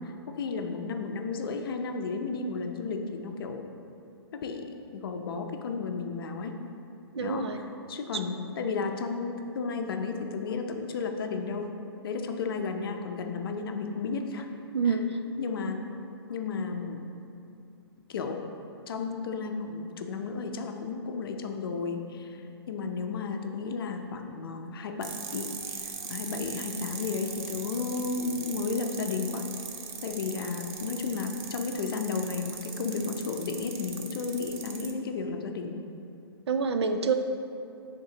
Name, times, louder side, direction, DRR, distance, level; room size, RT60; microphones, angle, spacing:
voice 1, 0.0-3.6 4.3-6.6 7.2-11.7 12.0-14.5 14.9-15.0 15.4-15.8 16.3-17.1 18.1-18.5 18.9-22.4 22.7-29.5 30.0-35.8, left 4 dB, 60° left, 5 dB, 0.6 m, -33 dB
voice 2, 7.1-7.6 8.1-8.2 14.7-15.2 36.5-37.1, right 5 dB, 80° right, 7 dB, 0.5 m, -27 dB
sound 1, 25.0-34.9, right 7 dB, 25° right, 0.4 m, -40 dB
9.5 x 3.7 x 2.9 m, 2.6 s
hypercardioid pair, 150°, 14 cm